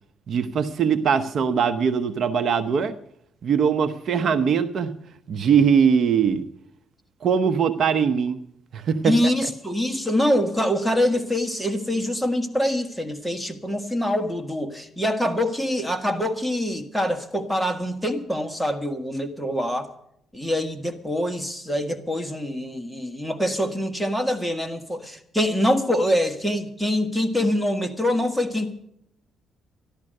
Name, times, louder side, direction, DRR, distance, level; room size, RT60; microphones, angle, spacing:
voice 1, 0.3-3.0 3.4-4.9 5.3-6.4 7.2-8.4 8.7-9.1, right 7 dB, 60° right, 11 dB, 0.9 m, -21 dB
voice 2, 9.0-19.9 20.3-28.7, left 1 dB, ahead, 6 dB, 1.7 m, -24 dB
13.5 x 12.0 x 6.6 m, 0.72 s
cardioid pair, 90°, 0 cm